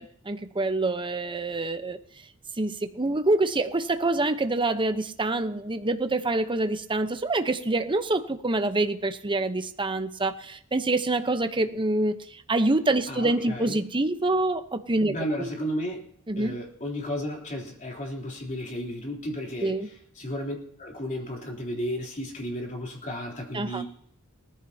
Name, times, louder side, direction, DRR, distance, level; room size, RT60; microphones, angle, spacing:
voice 1, 0.0-2.0 2.6-12.2 12.5-15.5 16.3-16.6 19.6-19.9 23.5-23.8, right 2 dB, 20° right, 9 dB, 0.9 m, -26 dB
voice 2, 13.1-13.8 15.1-16.0 16.3-23.8, equal, 35° left, 0 dB, 3.4 m, -33 dB
19.5 x 14.5 x 2.8 m, 0.66 s
head